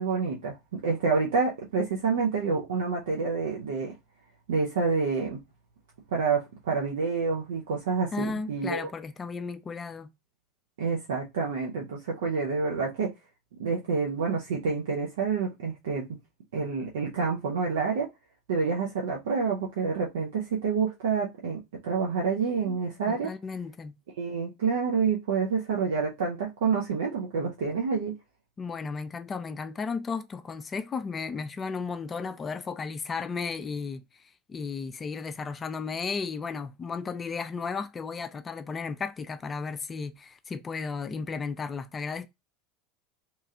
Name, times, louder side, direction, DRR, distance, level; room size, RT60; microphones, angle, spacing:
voice 1, 0.0-3.9 4.5-5.4 6.1-8.9 10.8-13.1 13.6-16.1 16.5-18.1 18.5-23.3 24.2-28.1, right 5 dB, 70° right, 0.7 m, -28 dB
voice 2, 8.1-10.1 22.7-22.8 23.1-23.9 28.6-34.0 34.5-42.3, left 5 dB, 25° left, 0.4 m, -34 dB
3.0 x 2.3 x 2.7 m
figure-of-eight pair, 75°, 0 cm